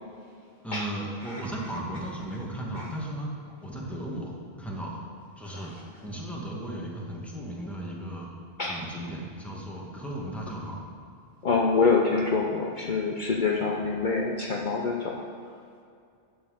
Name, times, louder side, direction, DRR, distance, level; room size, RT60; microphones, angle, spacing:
voice 1, 0.6-3.3 3.6-5.0 5.4-8.3 8.7-10.8, right 1 dB, ahead, -3 dB, 1.5 m, -36 dB
voice 2, 11.4-15.1, left 4 dB, 50° left, -1 dB, 0.8 m, -25 dB
11.0 x 4.5 x 7.4 m, 2.4 s
omnidirectional pair, 1.1 m